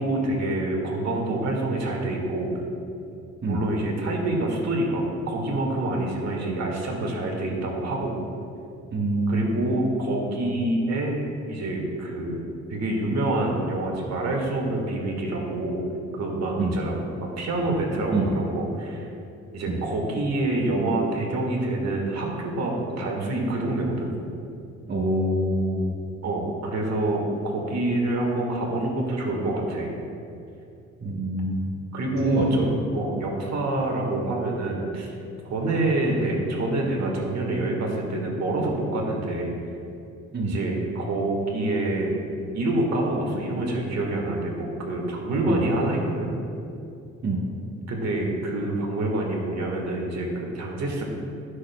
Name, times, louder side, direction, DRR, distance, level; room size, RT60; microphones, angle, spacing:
voice 1, 0.0-2.5 3.4-8.1 9.3-12.4 12.7-15.8 16.1-17.0 17.4-19.1 19.5-24.1 26.2-29.9 31.9-32.7 32.9-35.1 35.4-39.5 40.4-42.2 42.5-46.3 47.9-51.0, right 2 dB, 60° right, -1 dB, 1.7 m, -26 dB
voice 2, 8.9-9.6 16.6-16.8 18.1-18.3 19.7-19.8 24.9-25.9 31.0-31.7 32.2-32.7 40.3-40.5 45.5-45.6 47.2-47.4, right 2 dB, 35° right, -4 dB, 1.2 m, -25 dB
12.5 x 6.4 x 2.3 m, 2.6 s
cardioid pair, 90°, 30 cm